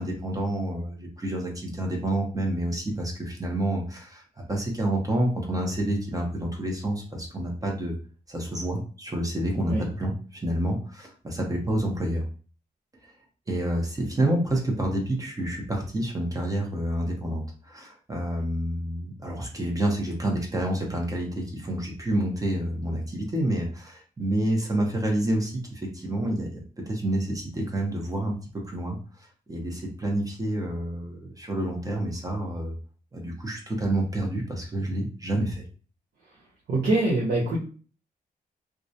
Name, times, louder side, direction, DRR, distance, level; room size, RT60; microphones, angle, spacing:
voice 1, 0.0-7.9 8.3-12.3 13.5-28.4 28.6-32.7 33.1-35.6, right 1 dB, 20° right, 0 dB, 0.7 m, -28 dB
voice 2, 36.7-37.6, right 2 dB, 80° right, -5 dB, 0.8 m, -24 dB
2.3 x 2.1 x 2.7 m, 0.38 s
cardioid pair, 95°, 16 cm